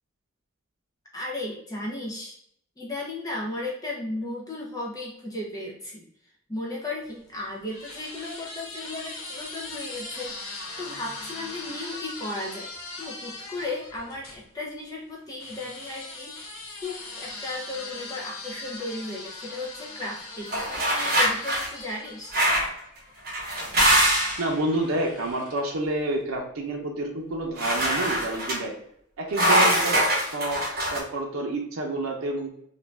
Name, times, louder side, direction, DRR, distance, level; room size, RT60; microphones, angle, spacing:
voice 1, 1.1-2.4 2.8-6.0 6.5-16.4 16.8-22.3, left 2 dB, 15° left, -4 dB, 0.4 m, -35 dB
sound 1, 7.0-14.4 15.4-23.3 24.2-25.8, left 3 dB, 85° left, 0.6 m, -40 dB
sound 2, 20.5-21.7 22.3-22.8 23.2-24.5 27.6-28.6 29.3-31.0, right 1 dB, 45° right, 0.8 m, -23 dB
voice 2, 24.4-28.7 29.2-30.6 30.9-32.5, right 2 dB, 85° right, 0 dB, 0.6 m, -29 dB
2.5 x 2.2 x 3.1 m, 0.70 s
head